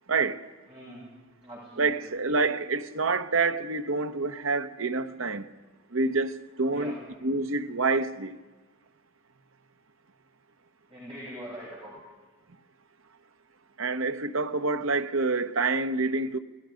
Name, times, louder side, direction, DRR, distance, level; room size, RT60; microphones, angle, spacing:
voice 1, 0.1-0.4 1.8-5.5 5.9-7.0 7.2-8.4 13.8-16.4, right 3 dB, 70° right, 1.1 m, -27 dB
voice 2, 0.7-1.1 1.4-1.9 6.7-7.0 10.9-11.9, equal, 25° right, 7.2 m, -42 dB
30.0 x 20.5 x 5.2 m
head